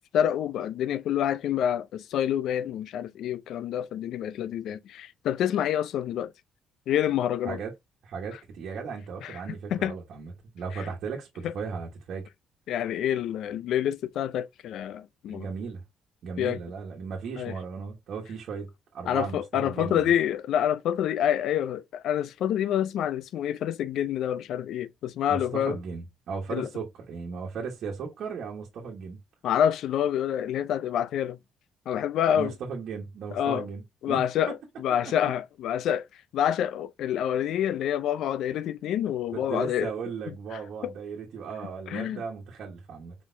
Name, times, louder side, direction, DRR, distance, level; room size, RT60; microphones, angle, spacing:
voice 1, 0.1-6.3 6.9-7.6 9.2-9.4 9.7-10.0 10.7-10.9 11.4-11.5 12.7-15.5 16.4-16.6 17.4-17.6 19.1-25.8 26.5-26.7 29.4-31.4 31.9-32.5 33.3-33.7 34.0-36.1 36.3-39.9 40.5-40.9 41.9-42.2, left 10 dB, 75° left, 0.4 m, -27 dB
voice 2, 8.0-12.3 15.3-15.8 16.2-18.7 18.9-20.1 25.3-29.2 32.3-34.5 39.3-43.1, right 5 dB, 65° right, 1.3 m, -36 dB
4.5 x 4.1 x 2.6 m
cardioid pair, 115°, 0 cm